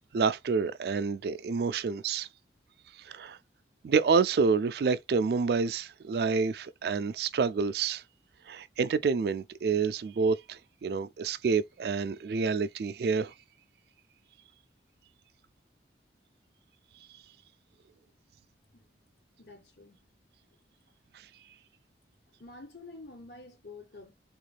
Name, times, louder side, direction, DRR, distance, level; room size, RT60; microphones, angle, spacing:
voice 1, 0.1-2.3 3.0-3.4 3.8-8.0 8.5-13.3, right 5 dB, 60° right, 0.3 m, -28 dB
voice 2, 19.4-20.0 22.4-24.1, left 3 dB, 70° left, 1.3 m, -48 dB
3.5 x 2.4 x 3.2 m
head